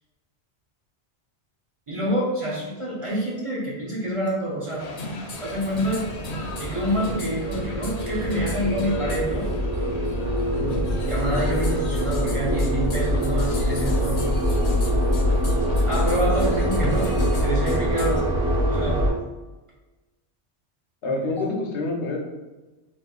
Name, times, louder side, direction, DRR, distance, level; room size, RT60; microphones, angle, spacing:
voice 1, 1.9-4.9 5.4-6.1 6.6-9.5 10.9-14.3 15.9-18.3 18.7-19.0 21.0-21.4, right 1 dB, 35° right, -5 dB, 0.7 m, -27 dB
sound 1, 4.8-18.2, left 2 dB, 55° left, 0.4 m, -37 dB
Sliding door, 5.5-11.4, right 2 dB, ahead, 0.8 m, -40 dB
sound 2, 5.6-19.1, equal, 65° right, 1.5 m, -24 dB
voice 2, 21.0-22.2, left 3 dB, 80° left, 0 dB, 1.0 m, -27 dB
4.1 x 3.1 x 2.3 m, 1.1 s
omnidirectional pair, 1.2 m